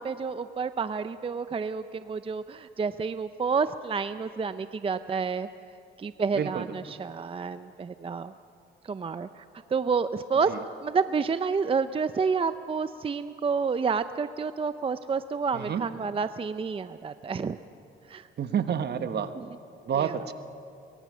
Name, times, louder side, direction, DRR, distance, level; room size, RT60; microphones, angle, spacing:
voice 1, 0.0-5.5 6.0-8.3 8.8-9.4 9.7-10.5 10.8-17.6 18.1-18.3 19.4-19.5 20.0-20.2, right 5 dB, 30° right, 12 dB, 0.5 m, -29 dB
voice 2, 6.4-6.7 10.5-10.6 15.5-15.8 18.4-19.3 19.8-20.3, right 8 dB, 55° right, 10 dB, 1.2 m, -29 dB
23.0 x 22.0 x 6.2 m, 2.5 s
cardioid pair, 90°, 20 cm